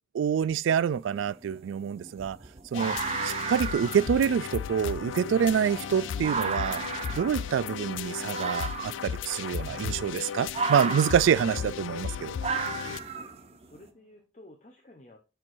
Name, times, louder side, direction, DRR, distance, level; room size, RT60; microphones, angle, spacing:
voice 1, 0.1-2.4 2.7-3.0 3.2-6.8 7.1-12.4, right 8 dB, 85° right, 0.3 m, -26 dB
sound 1, 0.7-0.8 1.2-13.8, right 5 dB, 30° right, 0.6 m, -35 dB
sound 2, 2.7-13.0, left 8 dB, 80° left, 0.3 m, -35 dB
sound 3, 5.5-14.2, right 3 dB, 5° right, 1.3 m, -55 dB
voice 2, 12.7-15.2, left 1 dB, 40° left, 0.8 m, -53 dB
10.5 x 4.5 x 2.6 m
head